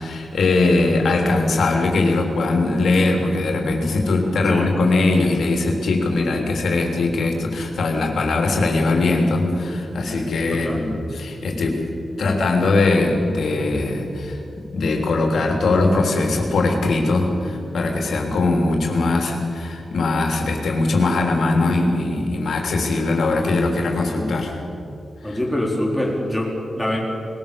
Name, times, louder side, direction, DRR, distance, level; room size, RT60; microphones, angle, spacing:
voice 1, 0.0-11.8 12.2-14.4 14.7-24.6, left 2 dB, 75° left, 1 dB, 3.5 m, -20 dB
voice 2, 10.5-10.9 25.2-27.0, left 1 dB, ahead, -2 dB, 4.2 m, -24 dB
21.0 x 20.0 x 7.1 m, 2.7 s
wide cardioid pair, 160°, 0 cm